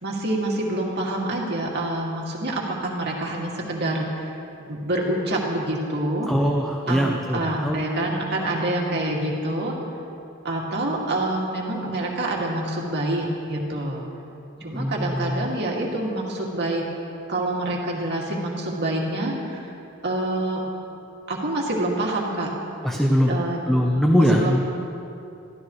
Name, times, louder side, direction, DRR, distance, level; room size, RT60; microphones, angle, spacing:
voice 1, 0.0-4.3 4.6-6.3 6.9-7.0 7.3-9.8 10.4-14.0 14.6-16.8 17.3-19.7 20.0-20.6 21.3-22.5 23.3-23.6 24.2-24.6, right 1 dB, 55° right, -2 dB, 2.4 m, -26 dB
voice 2, 6.3-7.8 14.6-15.5 22.8-23.4 23.7-24.6, equal, ahead, 0 dB, 0.8 m, -22 dB
22.0 x 14.5 x 3.2 m, 2.7 s
head